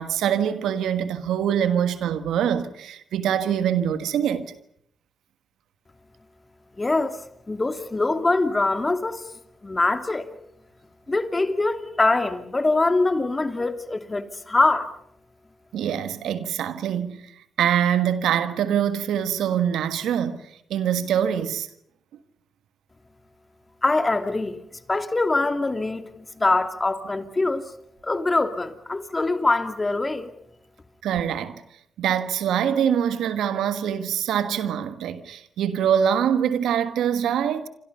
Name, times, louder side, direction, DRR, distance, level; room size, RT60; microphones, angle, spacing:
voice 1, 0.0-4.5 15.7-17.3 17.6-20.4 20.7-21.7 31.0-31.6 32.0-37.7, right 9 dB, 80° right, 1.4 m, -24 dB
voice 2, 6.8-7.2 7.5-9.2 9.6-10.3 11.1-14.9 23.8-24.6 24.9-27.6 28.0-30.3, left 2 dB, 30° left, 2.7 m, -23 dB
29.0 x 25.5 x 5.6 m
supercardioid pair, 45°, 0 cm